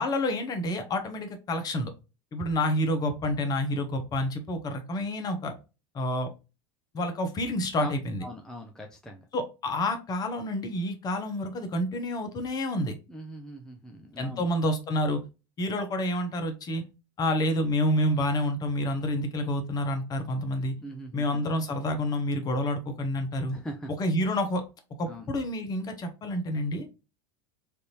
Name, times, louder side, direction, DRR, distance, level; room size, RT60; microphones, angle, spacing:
voice 1, 0.0-1.9 2.3-5.5 5.9-6.3 6.9-8.2 9.3-12.9 14.2-15.2 15.6-16.8 17.2-20.7 21.1-23.6 23.9-24.6 25.0-26.9, left 1 dB, 30° left, 6 dB, 0.9 m, -28 dB
voice 2, 8.2-9.2 13.1-14.4 20.8-21.4 23.5-23.9 25.1-25.3, right 1 dB, 5° left, 2 dB, 0.5 m, -41 dB
3.4 x 2.6 x 2.9 m, 0.29 s
supercardioid pair, 115°, 13 cm